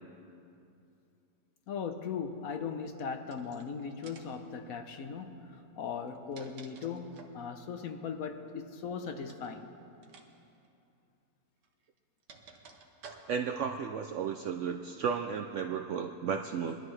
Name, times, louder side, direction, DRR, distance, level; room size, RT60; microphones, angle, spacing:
voice 1, 1.7-9.7, left 6 dB, 65° left, 1.1 m, -38 dB
sound 1, 3.2-3.6 4.0-4.4 5.9-7.4 9.2-9.5 10.0-10.3 10.5-10.7 11.6-13.6, right 5 dB, 90° right, 1.6 m, -53 dB
voice 2, 13.3-16.8, right 6 dB, 70° right, 0.7 m, -34 dB
22.0 x 12.5 x 3.2 m
omnidirectional pair, 1.7 m